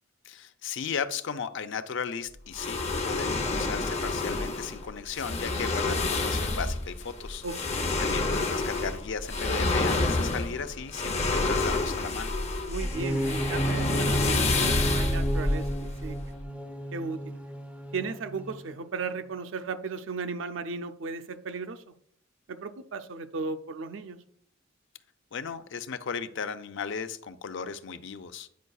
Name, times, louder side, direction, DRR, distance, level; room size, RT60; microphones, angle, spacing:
voice 1, 0.2-2.8 3.0-7.4 8.0-12.3 25.3-28.5, left 6 dB, 65° left, 10 dB, 0.5 m, -35 dB
sound 1, 2.5-16.4, left 2 dB, 35° left, 0.7 m, -28 dB
voice 2, 7.4-7.8 12.7-16.2 16.9-17.4 17.9-21.9 22.5-24.2, right 4 dB, 70° right, 10 dB, 0.5 m, -36 dB
sound 2, 12.8-18.8, right 1 dB, 5° right, 0.5 m, -32 dB
9.3 x 5.4 x 2.3 m, 0.66 s
head